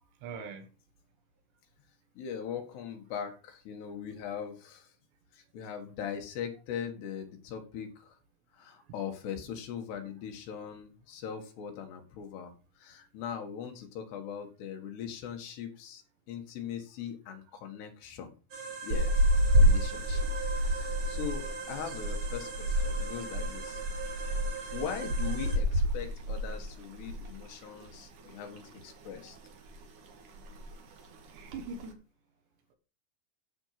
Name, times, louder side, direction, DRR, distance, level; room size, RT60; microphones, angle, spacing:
voice 1, 0.2-0.7 31.3-32.0, right 4 dB, 80° right, 3.7 m, -41 dB
voice 2, 2.2-4.9 5.3-8.2 8.5-12.5 12.8-16.0 16.3-18.3 18.8-19.3 19.6-20.3 20.6-23.8 24.7-29.4, left 8 dB, 75° left, 3.7 m, -40 dB
sound 1, 18.5-25.6, right 5 dB, 35° right, 2.6 m, -41 dB
sound 2, 18.9-27.4 27.7-27.9 28.3-29.1 29.5-29.8 30.1-30.2 30.3-30.8 31.3-31.8, equal, 55° right, 2.9 m, -29 dB
12.5 x 5.3 x 5.9 m
omnidirectional pair, 4.9 m